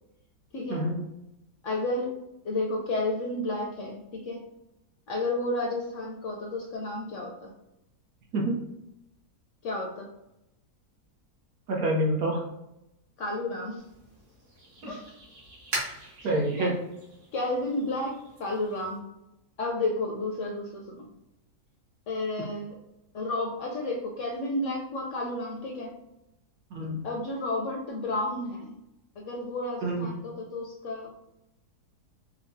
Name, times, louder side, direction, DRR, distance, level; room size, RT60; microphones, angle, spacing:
voice 1, 0.5-0.8 1.6-2.1 2.4-4.4 5.1-7.5 9.6-10.1 13.2-13.8 14.9-15.0 16.2-16.3 16.6-16.7 17.3-19.0 19.6-21.1 22.1-22.7 23.1-25.9 27.0-28.8 29.2-31.1, left 2 dB, 65° left, 0 dB, 0.8 m, -31 dB
voice 2, 11.7-12.4 14.8-14.9 16.2-16.7 26.7-27.0 29.8-30.1, right 1 dB, 70° right, -1 dB, 1.2 m, -27 dB
sound 1, 13.8-19.0, right 2 dB, 50° right, 1.5 m, -41 dB
4.4 x 2.2 x 2.5 m, 0.88 s
omnidirectional pair, 1.7 m